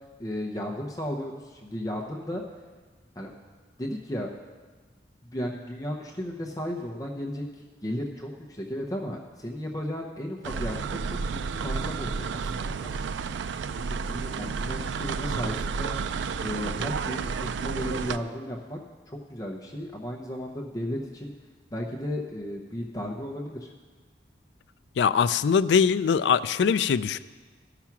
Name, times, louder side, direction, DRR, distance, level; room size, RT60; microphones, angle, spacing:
voice 1, 0.2-2.4 3.2-3.3 3.8-4.3 5.3-11.0 11.3-13.0 13.7-15.9 16.4-18.8 19.1-21.3 21.7-23.7, equal, 20° left, 0 dB, 0.8 m, -34 dB
sound 1, 10.4-18.2, right 5 dB, 90° right, 0.4 m, -31 dB
voice 2, 25.0-27.2, left 6 dB, 75° left, 15 dB, 0.3 m, -22 dB
13.5 x 5.9 x 5.9 m, 1.4 s
head